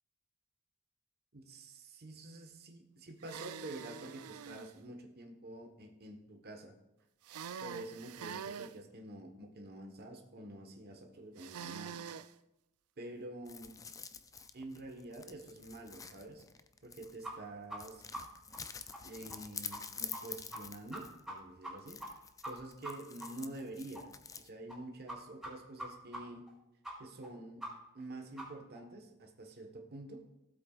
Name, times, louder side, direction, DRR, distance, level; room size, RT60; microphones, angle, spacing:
voice 1, 1.3-6.7 7.6-12.0 13.0-13.7 14.5-16.4 16.8-18.0 19.0-22.0 22.4-26.4 27.0-27.6 27.9-30.2, right 1 dB, 45° right, 3 dB, 1.3 m, -48 dB
sound 1, 3.2-4.7 7.2-8.7 11.4-12.3, right 7 dB, 75° right, 0.4 m, -45 dB
sound 2, 13.5-17.4 17.8-21.3 21.8-24.5, left 6 dB, 15° left, 0.4 m, -48 dB
sound 3, 17.2-17.3 17.7-17.8 18.1-18.2 18.5-18.6 18.9-19.0 19.3-19.4 19.7-19.8 20.1-20.2 20.5-20.6 20.9-21.3 21.6-21.7 22.0-22.1 22.4-22.5 22.8-22.9 23.2-23.3 23.6-23.7 23.9-24.0 24.3-24.4 24.7-24.8 25.1-25.2 25.4-25.5 25.8-25.9 26.1-26.2 26.5-26.6 26.8-26.9 27.2-27.3 27.6-27.7 28.0-28.1 28.4-28.5 28.7-28.8, right 1 dB, ahead, 3.6 m, -43 dB
17.0 x 7.9 x 2.5 m, 0.90 s
head